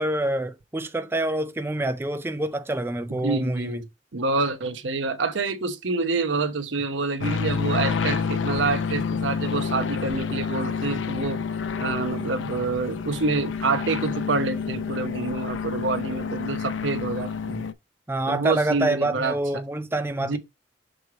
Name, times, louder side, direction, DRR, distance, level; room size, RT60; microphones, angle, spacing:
voice 1, 0.0-3.8 18.1-20.4, right 1 dB, 15° right, 0.4 m, -26 dB
voice 2, 3.1-3.9 4.1-11.4 11.8-17.7 18.3-19.6 20.2-20.4, right 3 dB, 90° right, 0.9 m, -27 dB
sound 1, 7.2-17.7, left 5 dB, 90° left, 0.5 m, -28 dB
6.5 x 3.1 x 4.8 m
head